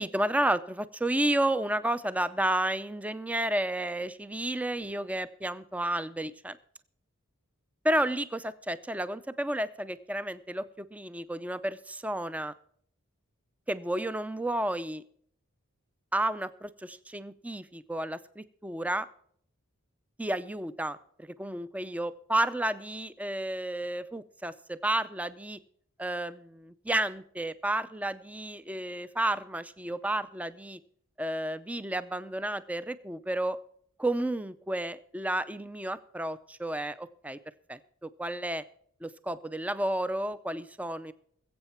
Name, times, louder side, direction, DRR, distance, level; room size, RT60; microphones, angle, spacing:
voice 1, 0.0-6.6 7.8-12.5 13.7-15.0 16.1-19.1 20.2-21.0 21.4-25.6 26.0-30.8 31.2-33.6 34.0-37.4 37.7-38.6 39.0-41.1, right 1 dB, 5° right, 14 dB, 0.4 m, -31 dB
21.0 x 8.0 x 4.4 m, 0.63 s
head